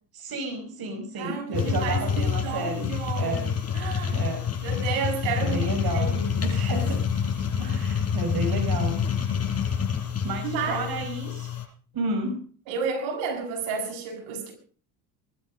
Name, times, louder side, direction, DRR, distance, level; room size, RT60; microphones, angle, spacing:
voice 1, 0.1-2.9 3.2-3.5 4.1-4.5 5.4-6.1 6.4-7.0 7.6-9.0 10.2-11.5 11.9-12.4, right 2 dB, 50° right, 5.0 m, -31 dB
voice 2, 1.2-3.4 3.7-4.2 4.6-6.4 10.4-10.9 12.7-14.5, right 5 dB, 75° right, 7.4 m, -31 dB
sound 1, 1.5-11.6, left 7 dB, 30° left, 7.2 m, -27 dB
22.0 x 12.5 x 5.2 m
supercardioid pair, 75°, 48 cm